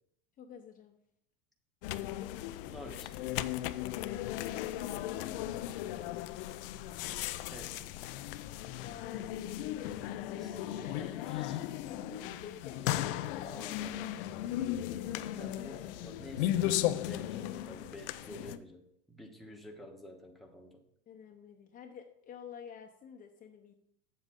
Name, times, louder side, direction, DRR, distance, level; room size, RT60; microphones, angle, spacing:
voice 1, 0.4-1.0 8.8-9.4 9.8-10.3 10.8-11.0 11.9-14.0 19.4-19.8 21.1-23.7, left 7 dB, 30° left, 2 dB, 0.8 m, -50 dB
sound 1, 1.8-18.6, left 13 dB, 70° left, 0.6 m, -36 dB
voice 2, 2.6-3.4 7.5-7.9 10.3-11.6 13.4-14.1 15.0-20.8, left 1 dB, ahead, 1 dB, 1.2 m, -50 dB
7.8 x 7.5 x 3.7 m, 0.75 s
supercardioid pair, 120°, 29 cm